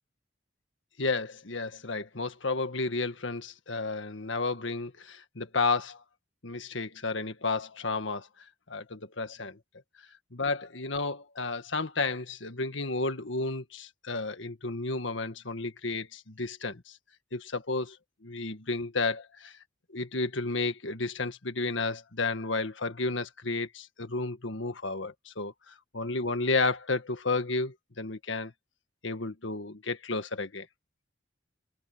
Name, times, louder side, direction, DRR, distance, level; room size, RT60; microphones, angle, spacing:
voice 1, 1.0-6.0 6.4-8.3 8.7-9.6 10.3-17.0 17.3-18.0 18.2-19.6 19.9-28.5 29.0-30.7, left 3 dB, 75° left, 1.7 m, -32 dB
head